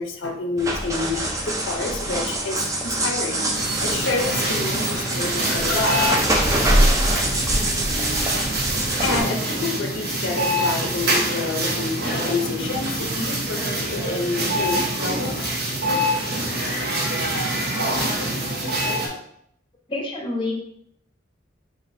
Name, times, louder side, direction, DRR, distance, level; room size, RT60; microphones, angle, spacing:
voice 1, 0.0-6.1 9.0-15.5, left 3 dB, 75° left, 3 dB, 0.6 m, -28 dB
sound 1, 0.6-9.2, right 1 dB, 15° right, 0.5 m, -24 dB
sound 2, 3.5-19.1, right 1 dB, 55° right, 1.0 m, -25 dB
voice 2, 19.9-20.5, left 2 dB, 25° left, 0 dB, 0.7 m, -27 dB
6.2 x 2.6 x 2.6 m, 0.72 s
head